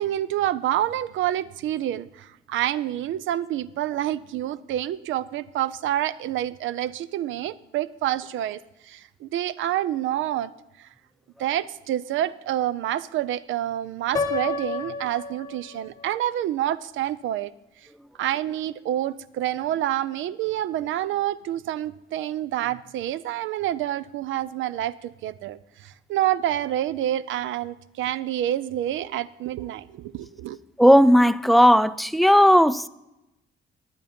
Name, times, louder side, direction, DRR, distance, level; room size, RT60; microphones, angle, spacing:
voice 1, 0.0-8.6 8.9-10.5 11.4-17.5 18.2-30.6, right 12 dB, 75° right, 0.5 m, -28 dB
Piano, 14.1-16.1, left 4 dB, 20° left, 1.0 m, -30 dB
voice 2, 30.8-32.9, equal, ahead, 0.3 m, -16 dB
11.0 x 9.2 x 5.2 m
cardioid pair, 90°, 20 cm